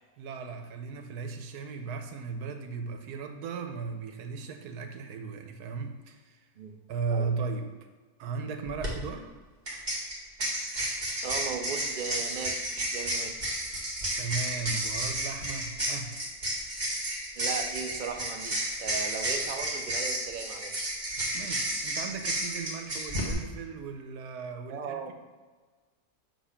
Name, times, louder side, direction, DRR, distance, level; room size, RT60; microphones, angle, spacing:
voice 1, 0.2-6.4 6.9-7.7 8.2-9.3 14.1-16.1 21.3-25.1, right 5 dB, 85° right, 6 dB, 1.2 m, -36 dB
sound 1, 8.7-8.9 9.7-23.3, right 1 dB, 30° right, 1.3 m, -32 dB
voice 2, 11.2-13.4 17.4-20.9 24.7-25.1, right 6 dB, 65° right, 4 dB, 0.4 m, -37 dB
6.8 x 2.9 x 5.6 m, 1.4 s
omnidirectional pair, 1.6 m